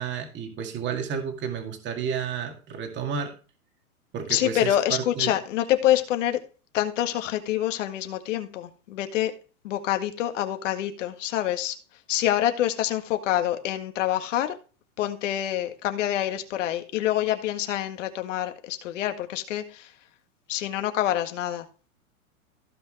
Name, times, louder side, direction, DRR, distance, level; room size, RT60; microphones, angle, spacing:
voice 1, 0.0-3.3 4.1-5.4, right 7 dB, 25° right, 2.2 m, -31 dB
voice 2, 4.3-6.4 6.7-9.3 9.6-11.8 12.1-14.6 15.0-19.9 20.5-21.7, left 12 dB, 60° left, 1.8 m, -26 dB
16.0 x 5.6 x 3.3 m
hypercardioid pair, 115°, 43 cm